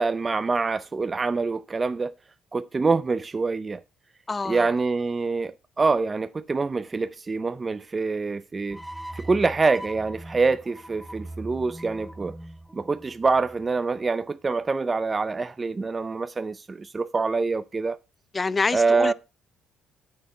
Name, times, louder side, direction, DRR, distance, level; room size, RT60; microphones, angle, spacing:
voice 1, 0.0-2.1 2.5-3.8 4.5-8.8 9.1-12.4 12.7-18.0 18.7-19.1, right 4 dB, 25° right, 0.5 m, -25 dB
voice 2, 4.3-4.7 18.3-19.1, left 4 dB, 25° left, 0.6 m, -26 dB
sound 1, 8.7-13.9, right 1 dB, ahead, 1.0 m, -41 dB
9.3 x 6.7 x 5.4 m
cardioid pair, 85°, 0 cm